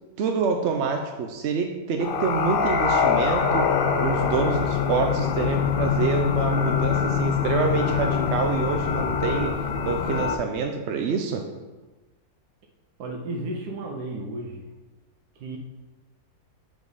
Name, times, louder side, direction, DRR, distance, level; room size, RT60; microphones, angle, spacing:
voice 1, 0.2-3.7 4.0-9.5 9.8-11.4, right 5 dB, 65° right, 3 dB, 0.7 m, -27 dB
sound 1, 2.0-10.4, left 6 dB, 90° left, 0.4 m, -24 dB
voice 2, 13.0-14.7 15.4-15.6, right 2 dB, 80° right, 0 dB, 1.3 m, -33 dB
7.3 x 3.8 x 4.8 m, 1.2 s
omnidirectional pair, 1.6 m